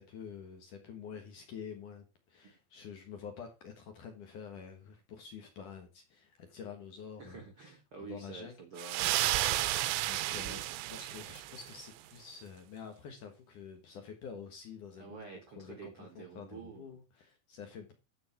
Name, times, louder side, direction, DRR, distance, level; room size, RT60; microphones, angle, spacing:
voice 1, 0.0-7.4 8.0-8.6 8.9-9.0 10.1-15.2 15.6-17.9, left 6 dB, 60° left, 2.3 m, -48 dB
voice 2, 7.2-9.1 10.3-10.6 15.0-17.0, right 5 dB, 60° right, 1.4 m, -48 dB
sound 1, 8.8-11.8, right 16 dB, 85° right, 3.0 m, -32 dB
12.5 x 5.2 x 5.8 m
omnidirectional pair, 5.2 m